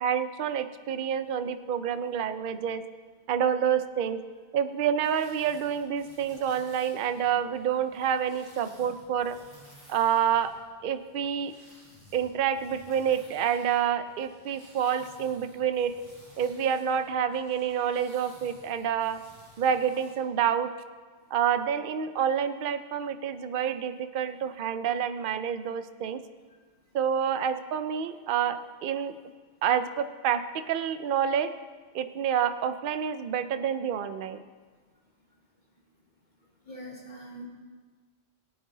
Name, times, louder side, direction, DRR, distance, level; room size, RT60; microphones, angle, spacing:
voice 1, 0.0-2.8 3.3-4.2 4.5-9.4 9.9-10.5 10.8-11.5 12.1-16.0 16.4-19.2 19.6-20.7 21.3-26.2 26.9-29.1 29.6-31.5 31.9-34.4, right 8 dB, 60° right, 11 dB, 0.7 m, -28 dB
sound 1, 5.0-20.1, right 1 dB, 20° right, 3.8 m, -56 dB
voice 2, 36.6-37.4, right 1 dB, 45° left, -3 dB, 2.5 m, -42 dB
18.0 x 8.8 x 3.9 m, 1.5 s
omnidirectional pair, 1.1 m